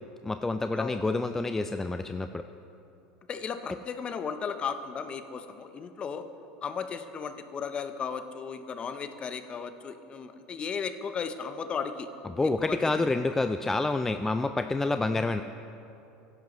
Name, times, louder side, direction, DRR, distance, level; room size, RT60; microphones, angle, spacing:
voice 1, 0.2-2.4 12.2-15.4, left 3 dB, 10° left, 9 dB, 0.3 m, -28 dB
voice 2, 3.3-6.2 6.6-12.1 12.6-12.8, left 6 dB, 30° left, 9 dB, 0.7 m, -35 dB
16.0 x 11.0 x 3.1 m, 2.8 s
supercardioid pair, 110°, 3 cm